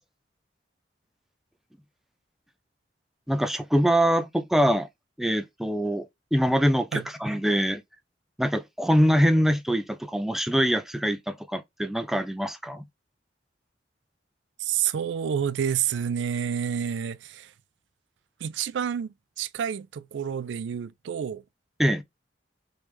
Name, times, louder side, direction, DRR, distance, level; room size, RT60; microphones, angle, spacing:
voice 1, 3.3-4.9 5.2-7.8 8.4-12.8 21.8-22.0, equal, ahead, 0.3 m, -24 dB
voice 2, 14.6-17.5 18.4-21.4, right 8 dB, 75° right, 0.3 m, -29 dB
3.3 x 3.2 x 3.0 m
head